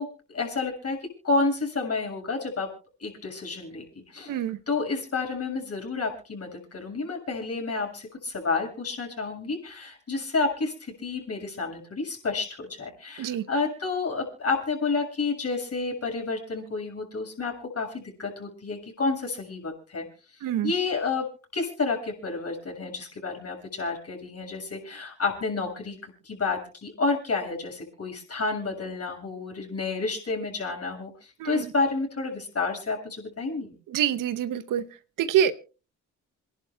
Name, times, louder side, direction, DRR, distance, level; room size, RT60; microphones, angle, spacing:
voice 1, 0.0-2.7 3.0-4.4 4.7-20.1 20.6-21.3 21.5-33.7, left 3 dB, 45° left, 1 dB, 7.0 m, -30 dB
voice 2, 20.4-20.7 31.4-31.7 33.9-34.8 35.2-35.5, right 10 dB, 65° right, 14 dB, 0.9 m, -25 dB
28.0 x 11.0 x 2.3 m, 0.35 s
hypercardioid pair, 45°, 35 cm